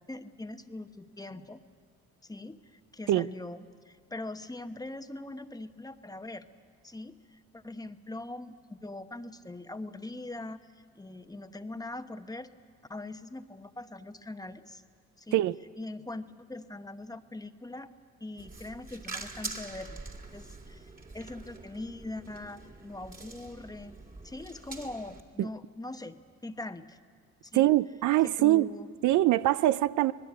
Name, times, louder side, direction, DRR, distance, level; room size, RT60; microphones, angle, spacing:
voice 1, 0.1-1.6 2.2-6.5 6.8-12.5 12.9-14.8 15.2-15.4 15.8-17.9 18.2-20.0 20.3-24.0 24.2-27.0 27.4-27.7 28.2-28.9, left 2 dB, 10° left, 1.0 m, -42 dB
sound 1, 18.4-25.2, right 3 dB, 30° right, 2.3 m, -44 dB
voice 2, 27.5-28.7 29.0-30.1, right 15 dB, 75° right, 0.5 m, -23 dB
25.5 x 19.5 x 8.5 m
cardioid pair, 90°, 30 cm